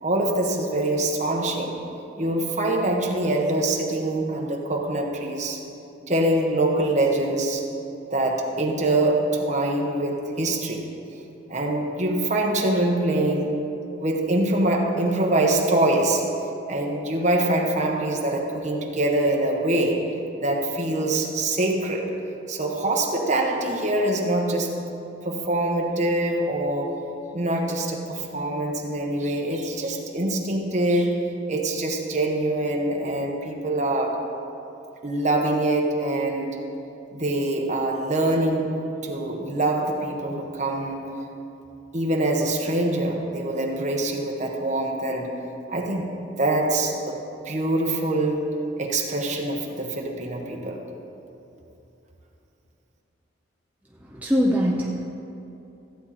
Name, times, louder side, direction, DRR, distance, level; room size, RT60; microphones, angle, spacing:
voice 1, 0.0-1.8 2.2-5.6 6.1-7.6 8.1-10.9 11.5-13.6 14.0-16.3 16.7-20.1 20.4-22.1 22.5-24.8 25.2-27.0 27.3-34.2 35.0-36.6 37.1-38.8 39.0-41.1 41.9-45.3 45.7-50.8, right 1 dB, 35° right, 0 dB, 1.2 m, -24 dB
voice 2, 54.1-55.0, equal, 10° right, -3 dB, 0.6 m, -22 dB
15.0 x 8.7 x 4.3 m, 2.9 s
head